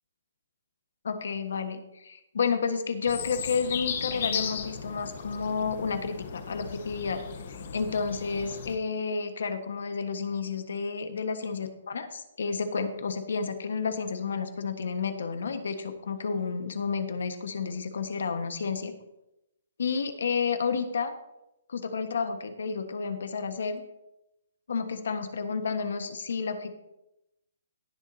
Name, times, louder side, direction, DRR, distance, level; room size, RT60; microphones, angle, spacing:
voice 1, 1.0-7.2 7.5-18.9 19.8-21.1 21.7-23.8 24.7-26.7, left 5 dB, 60° left, 8 dB, 1.4 m, -31 dB
sound 1, 3.1-8.7, left 7 dB, 35° left, 1.0 m, -36 dB
19.5 x 7.2 x 2.8 m, 0.87 s
hypercardioid pair, 180°, 0 cm